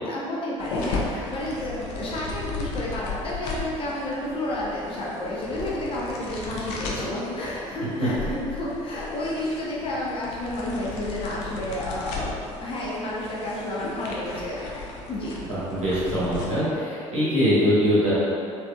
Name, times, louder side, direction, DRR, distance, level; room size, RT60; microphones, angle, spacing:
voice 1, 0.0-14.7 15.1-15.3, left 1 dB, 35° left, -6 dB, 0.8 m, -31 dB
sound 1, 0.6-16.5, left 3 dB, 55° left, 0.5 m, -36 dB
voice 2, 15.5-18.1, equal, 85° right, -11 dB, 1.0 m, -22 dB
3.3 x 2.8 x 2.3 m, 2.4 s
figure-of-eight pair, 55°, 17 cm